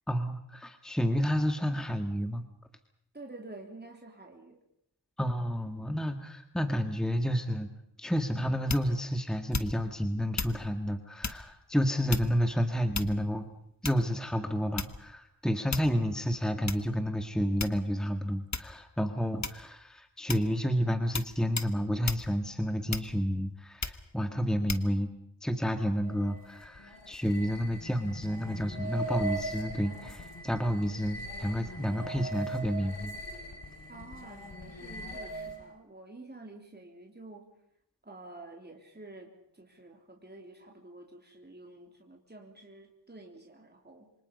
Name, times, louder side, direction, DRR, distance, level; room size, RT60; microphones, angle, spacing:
voice 1, 0.1-2.4 5.2-7.7 8.0-13.4 13.8-25.1 25.4-33.1, equal, ahead, 7 dB, 1.7 m, -30 dB
voice 2, 3.1-4.6 33.9-37.5 38.0-44.1, right 2 dB, 20° right, 1 dB, 3.6 m, -49 dB
sound 1, 8.7-9.0 9.5-9.9 10.4-10.6 11.2-11.5 12.1-12.5 12.9-13.4 13.8-14.2 14.8-15.1 15.7-16.0 16.7-16.8 17.6-18.0 18.5-18.8 19.4-19.8 20.3-20.5 21.1-21.3 21.6-21.7 22.1-22.3 22.9-23.3 23.8-24.1 24.7-24.9, left 4 dB, 40° left, 1.5 m, -35 dB
sound 2, 26.0-35.8, right 1 dB, 70° left, 3.2 m, -40 dB
27.5 x 25.0 x 5.4 m, 0.75 s
wide cardioid pair, 75°, 45 cm